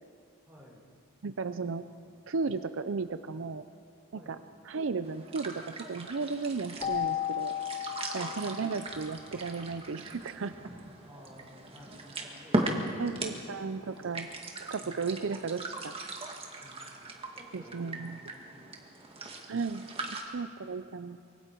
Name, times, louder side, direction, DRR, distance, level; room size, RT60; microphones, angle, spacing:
voice 1, 0.5-0.9 1.2-2.1 4.1-4.4 8.1-8.4 11.0-13.2 13.4-13.7 14.8-15.0 16.6-19.2, equal, 10° right, -5 dB, 5.5 m, -55 dB
voice 2, 1.2-1.9 2.3-3.6 4.3-4.4 4.6-7.6 8.1-10.5 13.0-14.3 14.6-15.9 17.5-18.2 19.5-19.9 20.3-21.2, right 4 dB, 60° right, 10 dB, 0.5 m, -34 dB
sound 1, 5.0-20.2, right 1 dB, 25° right, 1.8 m, -39 dB
Keyboard (musical), 6.8-9.4, left 11 dB, 25° left, 0.5 m, -35 dB
24.5 x 24.0 x 4.6 m, 2.3 s
head